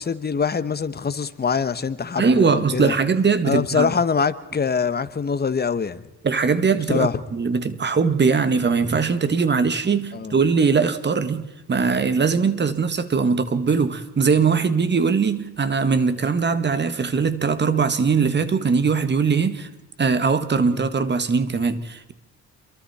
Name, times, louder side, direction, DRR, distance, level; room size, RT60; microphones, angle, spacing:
voice 1, 0.0-2.9 3.4-6.0 6.9-7.2 10.1-10.3 20.7-20.8, left 6 dB, 30° left, 1.3 m, -24 dB
voice 2, 2.2-3.9 6.2-19.7 20.0-22.1, right 5 dB, 35° right, 1.7 m, -21 dB
28.5 x 23.0 x 4.3 m
cardioid pair, 90°, 30 cm